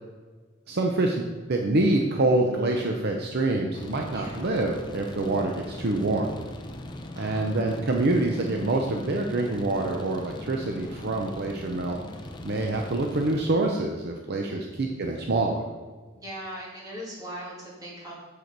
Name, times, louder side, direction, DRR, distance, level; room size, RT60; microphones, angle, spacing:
voice 1, 0.7-6.3 7.2-12.0 12.4-15.6, right 2 dB, 55° right, 2 dB, 0.6 m, -26 dB
sound 1, 3.7-13.5, left 1 dB, 20° left, 0.6 m, -40 dB
voice 2, 4.1-4.5 7.2-7.9 14.5-14.9 16.1-18.1, equal, 20° right, -6 dB, 2.6 m, -40 dB
6.8 x 6.5 x 4.6 m, 1.4 s
head